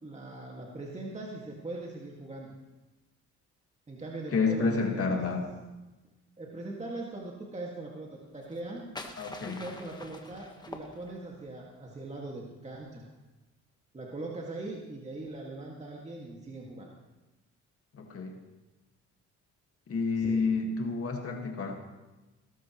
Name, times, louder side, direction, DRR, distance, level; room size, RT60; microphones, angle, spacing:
voice 1, 0.0-2.5 3.9-5.2 6.4-8.9 9.5-13.0 13.9-16.9 20.2-20.4, right 2 dB, 20° right, -2 dB, 2.1 m, -41 dB
voice 2, 4.3-5.5 9.2-9.6 17.9-18.4 19.9-21.7, left 4 dB, 50° left, 3 dB, 1.9 m, -29 dB
sound 1, 8.4-11.5, left 2 dB, 15° left, 1.4 m, -45 dB
18.0 x 13.0 x 3.1 m, 1.1 s
cardioid pair, 90°, 30 cm